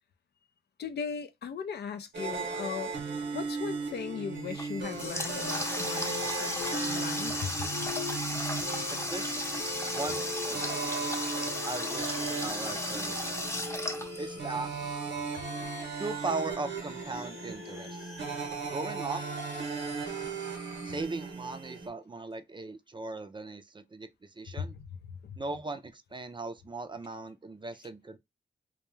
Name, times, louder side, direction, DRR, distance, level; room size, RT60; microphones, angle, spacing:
voice 1, 0.8-2.9 3.3-7.7 25.2-25.3, left 7 dB, 60° left, 0.4 m, -38 dB
sound 1, 2.1-21.9, right 4 dB, 70° right, 0.8 m, -37 dB
Water tap faucet, 4.5-14.7, left 1 dB, 15° left, 0.7 m, -35 dB
sound 2, 5.6-21.0, left 3 dB, 85° left, 1.0 m, -49 dB
voice 2, 8.9-10.7 11.7-13.4 14.2-14.7 16.0-18.1 18.7-19.3 20.8-24.8 25.4-28.2, right 3 dB, 25° right, 0.4 m, -38 dB
2.2 x 2.2 x 3.1 m
supercardioid pair, 45°, 19 cm